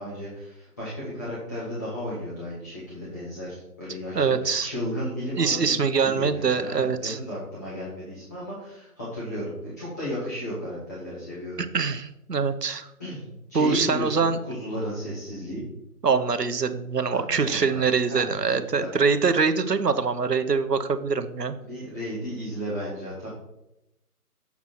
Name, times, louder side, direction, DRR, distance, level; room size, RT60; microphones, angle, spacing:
voice 1, 0.0-11.6 13.0-15.6 17.1-17.8 18.1-18.9 21.7-23.3, equal, 10° left, -10 dB, 0.9 m, -34 dB
voice 2, 4.1-4.7 5.4-7.2 11.6-12.9 13.5-14.4 16.0-21.5, right 5 dB, 85° right, 10 dB, 0.9 m, -24 dB
7.1 x 4.7 x 5.7 m, 0.89 s
figure-of-eight pair, 150°, 47 cm